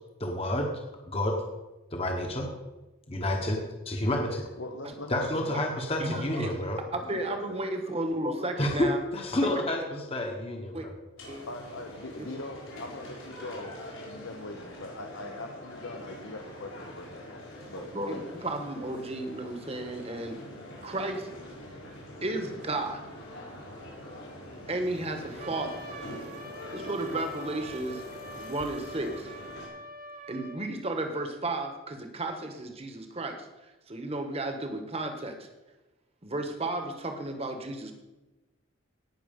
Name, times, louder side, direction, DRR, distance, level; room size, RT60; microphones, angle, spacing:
voice 1, 0.2-0.7 1.1-1.3 1.9-2.5 3.1-3.6 3.8-4.4 5.1-6.8 8.6-10.9, left 1 dB, 30° left, 2 dB, 1.2 m, -29 dB
voice 2, 4.3-5.6 6.1-6.5 7.1-7.6 8.0-8.5 11.5-17.4 17.7-18.2, left 2 dB, 70° left, 3 dB, 1.0 m, -41 dB
voice 3, 6.0-9.0 9.4-9.6 10.7-10.9 11.3-11.4 12.2-12.3 17.7-20.4 20.8-21.3 22.2-23.0 24.7-25.8 26.7-28.0 28.4-29.3 30.3-33.5 33.9-35.5 36.2-37.9, right 2 dB, 30° right, 5 dB, 1.3 m, -33 dB
sound 1, 11.2-29.7, left 1 dB, 85° left, 5.0 m, -44 dB
Trumpet, 25.4-30.7, right 1 dB, 50° right, 1.2 m, -45 dB
17.5 x 6.2 x 5.4 m, 1.1 s
head